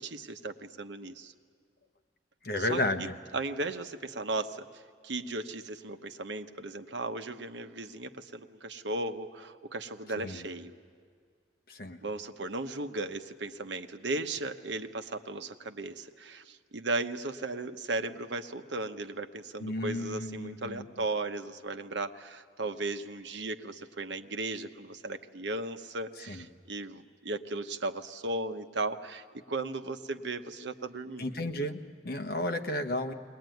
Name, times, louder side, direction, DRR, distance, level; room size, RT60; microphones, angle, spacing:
voice 1, 0.0-1.3 2.6-2.8 3.3-4.7 5.0-10.7 12.0-31.3, right 2 dB, 75° right, 8 dB, 1.0 m, -36 dB
voice 2, 2.4-3.1 10.2-10.5 11.7-12.0 19.6-20.9 26.3-26.4 31.2-33.1, left 1 dB, 55° left, 6 dB, 1.2 m, -33 dB
22.0 x 19.5 x 9.2 m, 2.1 s
head